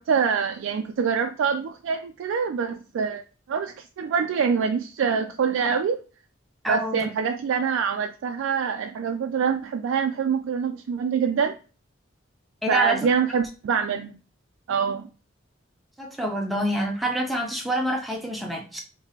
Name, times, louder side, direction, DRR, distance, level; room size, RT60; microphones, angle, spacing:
voice 1, 0.0-3.2 3.5-6.0 6.7-11.5 12.7-14.1 14.7-15.1, right 6 dB, 75° right, 5 dB, 0.3 m, -25 dB
voice 2, 6.6-7.1 12.6-13.1 16.0-18.8, right 1 dB, ahead, 0 dB, 0.6 m, -26 dB
3.5 x 2.8 x 2.7 m, 0.35 s
head